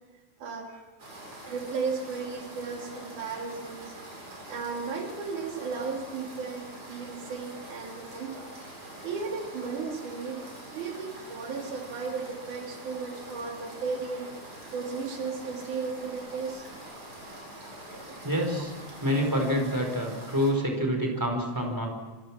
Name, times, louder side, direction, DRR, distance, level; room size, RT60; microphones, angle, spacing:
voice 1, 0.4-0.9 1.4-4.0 4.5-8.5 9.0-14.3 14.7-16.7, right 5 dB, 80° right, 2 dB, 3.9 m, -35 dB
sound 1, 1.0-20.5, right 1 dB, 45° right, 8.2 m, -45 dB
voice 2, 17.6-18.7 19.0-21.9, equal, 5° right, 2 dB, 4.5 m, -28 dB
27.0 x 26.0 x 6.2 m, 1.3 s
omnidirectional pair, 3.4 m